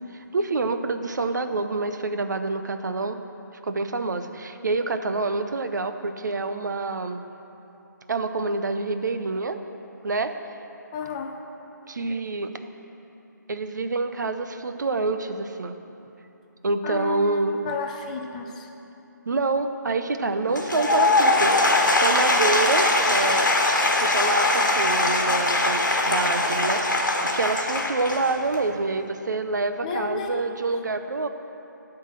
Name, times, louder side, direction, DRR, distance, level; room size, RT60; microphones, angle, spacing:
voice 1, 0.3-3.2 3.6-7.2 8.1-9.6 10.0-10.3 11.9-12.7 13.5-15.7 16.6-17.6 19.3-23.5 23.8-31.3, right 3 dB, 65° right, 8 dB, 0.6 m, -27 dB
voice 2, 10.9-11.4 16.8-18.7 29.8-30.6, left 5 dB, 20° left, 3 dB, 0.4 m, -32 dB
Applause / Crowd, 20.5-28.7, left 2 dB, 75° left, 1.2 m, -21 dB
11.0 x 3.8 x 7.4 m, 3.0 s
figure-of-eight pair, 150°, 10 cm